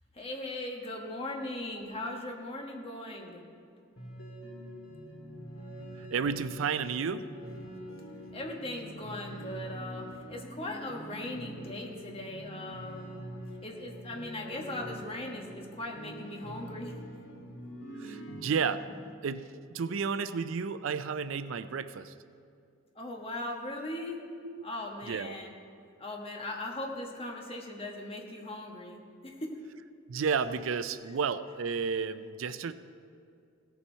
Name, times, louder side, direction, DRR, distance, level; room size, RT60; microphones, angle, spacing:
voice 1, 0.1-3.4 8.3-13.2 13.6-16.9 22.9-24.2 24.6-25.5 26.0-29.7, left 1 dB, 30° left, 0 dB, 1.3 m, -39 dB
sound 1, 4.0-18.7, equal, 75° left, 2.1 m, -44 dB
voice 2, 6.0-7.3 18.0-18.9 19.2-22.1 24.4-24.6 25.1-25.4 30.1-32.7, right 6 dB, 75° right, 12 dB, 0.4 m, -32 dB
16.5 x 7.1 x 4.5 m, 2.5 s
head